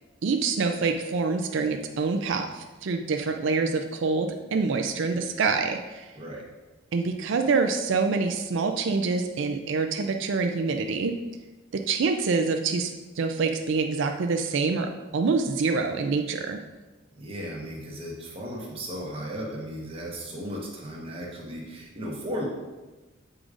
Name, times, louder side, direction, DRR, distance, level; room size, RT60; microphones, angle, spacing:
voice 1, 0.2-6.1 6.9-11.2 11.7-16.6, right 4 dB, 60° right, 5 dB, 0.4 m, -26 dB
voice 2, 17.1-22.5, equal, 25° right, -3 dB, 1.1 m, -35 dB
7.8 x 4.9 x 2.5 m, 1.2 s
head